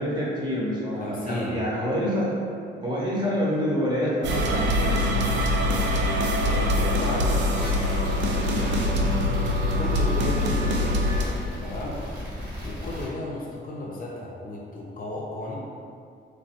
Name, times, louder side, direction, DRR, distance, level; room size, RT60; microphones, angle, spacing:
voice 1, 0.0-2.3 2.8-5.2, equal, 20° right, -6 dB, 0.9 m, -27 dB
voice 2, 1.0-1.6 6.4-9.1 9.8-11.1 11.6-12.0 12.6-15.5, left 2 dB, 45° left, -3 dB, 0.5 m, -34 dB
sound 1, 4.2-11.2, left 1 dB, 65° right, 0.4 m, -24 dB
sound 2, 7.5-13.1, equal, 45° right, 1.1 m, -35 dB
3.1 x 2.2 x 2.8 m, 2.3 s
cardioid pair, 90°, 20 cm